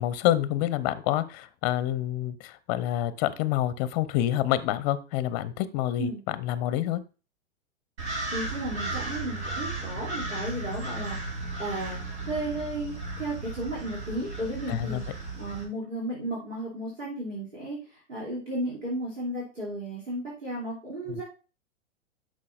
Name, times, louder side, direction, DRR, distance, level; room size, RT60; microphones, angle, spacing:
voice 1, 0.0-7.0 14.7-15.0 21.1-21.2, left 13 dB, 35° left, 15 dB, 0.7 m, -27 dB
sound 1, 8.0-15.6, right 2 dB, 60° right, 3.3 m, -35 dB
voice 2, 8.3-12.0 12.2-15.0 15.4-21.2, right 1 dB, 90° right, -5 dB, 3.1 m, -34 dB
9.6 x 6.4 x 2.5 m, 0.33 s
figure-of-eight pair, 105°, 37 cm